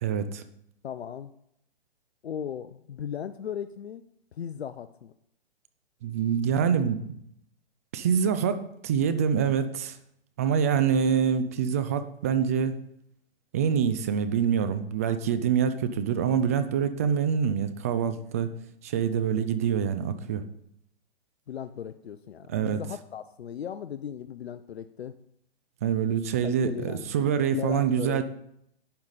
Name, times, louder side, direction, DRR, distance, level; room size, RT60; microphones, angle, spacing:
voice 1, 0.0-0.4 6.0-7.0 7.9-10.0 10.4-12.7 13.5-18.5 18.8-20.4 22.5-22.8 25.8-28.2, right 7 dB, 15° right, 11 dB, 0.3 m, -25 dB
voice 2, 0.8-1.3 2.2-4.0 4.3-5.1 21.5-25.1 26.4-27.1 27.5-28.2, left 9 dB, 80° left, 11 dB, 0.7 m, -37 dB
11.5 x 8.8 x 4.1 m, 0.73 s
hypercardioid pair, 140°, 31 cm